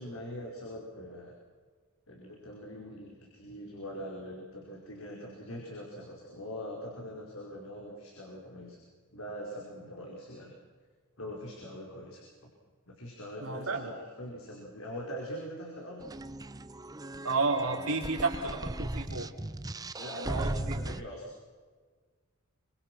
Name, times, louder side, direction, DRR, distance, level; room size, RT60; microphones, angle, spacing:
voice 1, 0.0-1.3 2.1-8.8 9.1-10.5 11.2-12.3 12.9-16.0 20.0-21.3, equal, 70° left, -2 dB, 5.0 m, -42 dB
voice 2, 13.4-13.9 17.2-19.3 20.1-20.8, right 3 dB, 75° right, 0 dB, 4.4 m, -32 dB
sound 1, 16.0-21.0, right 1 dB, 15° right, 0.7 m, -37 dB
27.5 x 25.5 x 6.2 m, 1.5 s
head